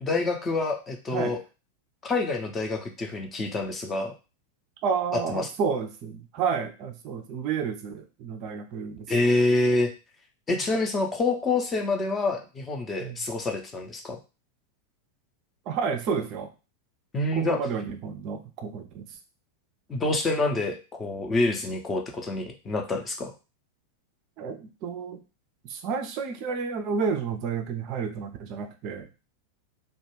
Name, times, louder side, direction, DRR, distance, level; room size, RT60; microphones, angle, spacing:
voice 1, 0.0-1.4 2.0-4.1 5.3-5.5 9.1-9.9 10.5-14.2 17.1-17.6 19.9-23.3, left 2 dB, 20° left, 3 dB, 0.5 m, -27 dB
voice 2, 4.8-9.1 13.0-13.2 15.7-16.5 17.3-19.2 24.4-25.2 25.6-29.1, right 6 dB, 40° right, 6 dB, 0.4 m, -30 dB
2.2 x 2.1 x 3.1 m, 0.31 s
figure-of-eight pair, 90°, 0 cm